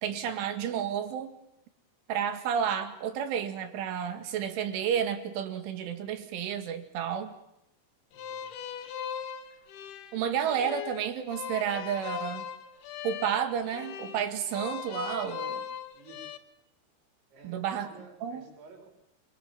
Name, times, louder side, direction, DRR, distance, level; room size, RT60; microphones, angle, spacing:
voice 1, 0.0-1.3 2.1-7.4 10.1-12.5 13.0-15.6 17.4-17.9 18.2-18.4, right 8 dB, 85° right, 8 dB, 4.6 m, -31 dB
sound 1, 8.1-16.4, left 8 dB, 65° left, 2.9 m, -39 dB
voice 2, 8.1-8.5 15.9-16.3 17.3-18.9, right 4 dB, 70° right, 2 dB, 6.7 m, -53 dB
28.0 x 23.0 x 7.5 m, 0.80 s
omnidirectional pair, 5.4 m